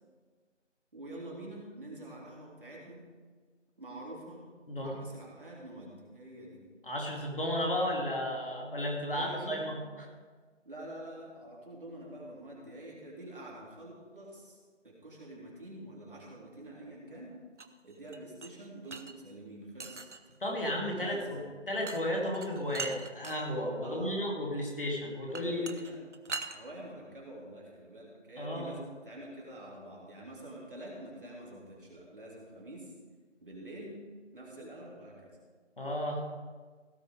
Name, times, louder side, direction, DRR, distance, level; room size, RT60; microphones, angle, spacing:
voice 1, 0.9-3.1 3.8-4.5 4.8-6.6 8.9-9.6 10.6-14.6 14.8-17.4 17.8-20.0 21.0-21.4 23.8-24.2 25.3-26.0 26.5-32.9 33.4-34.0 34.3-35.4, right 1 dB, 45° right, -4 dB, 3.5 m, -46 dB
voice 2, 6.8-9.8 20.4-21.4 21.7-25.7 28.4-28.8 35.8-36.2, left 1 dB, 45° left, -1 dB, 2.3 m, -33 dB
sound 1, 17.6-19.2 19.8-20.4 21.9-22.0 22.3-23.4 25.3-26.6, right 4 dB, 70° right, 1.1 m, -41 dB
17.0 x 6.7 x 4.9 m, 1.5 s
figure-of-eight pair, 175°, 37 cm